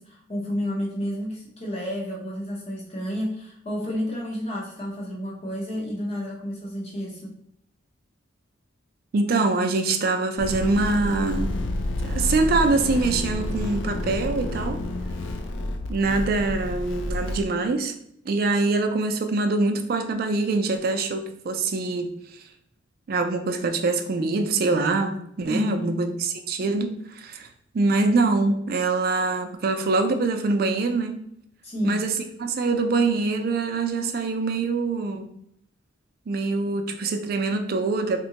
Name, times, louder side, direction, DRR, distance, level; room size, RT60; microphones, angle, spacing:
voice 1, 0.0-7.3 25.5-26.0 31.6-32.0, equal, 30° left, -3 dB, 0.8 m, -30 dB
voice 2, 9.1-11.5 12.0-14.8 15.9-17.9 18.3-22.1 23.1-27.5 27.7-31.2 31.8-35.3 36.3-38.2, right 3 dB, 50° right, 7 dB, 0.3 m, -24 dB
sound 1, 10.4-17.4, left 1 dB, 65° left, 0.3 m, -29 dB
3.6 x 2.1 x 2.8 m, 0.73 s
head